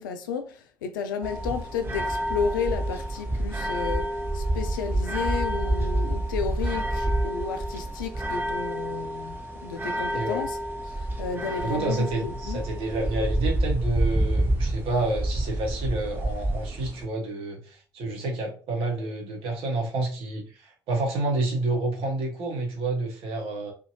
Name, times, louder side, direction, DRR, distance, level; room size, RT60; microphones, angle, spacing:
voice 1, 0.0-10.6 10.8-12.6, left 6 dB, 75° left, 0.4 m, -32 dB
sound 1, 1.2-17.1, right 1 dB, 20° right, 1.0 m, -28 dB
voice 2, 10.0-10.4 11.6-23.7, right 2 dB, 60° right, 0.9 m, -29 dB
2.7 x 2.4 x 2.7 m
figure-of-eight pair, 45°, 11 cm